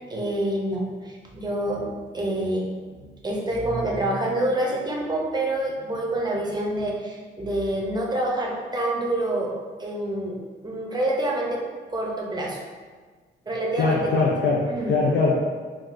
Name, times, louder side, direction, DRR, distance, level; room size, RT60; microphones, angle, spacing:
voice 1, 0.1-1.9 2.1-2.7 3.2-9.5 9.8-10.4 10.6-11.6 11.9-12.6 13.5-14.3 14.7-14.9, right 1 dB, 20° right, -2 dB, 0.7 m, -27 dB
voice 2, 13.8-15.3, left 4 dB, 65° left, -3 dB, 0.5 m, -22 dB
3.9 x 2.3 x 2.5 m, 1.5 s
cardioid pair, 90°, 20 cm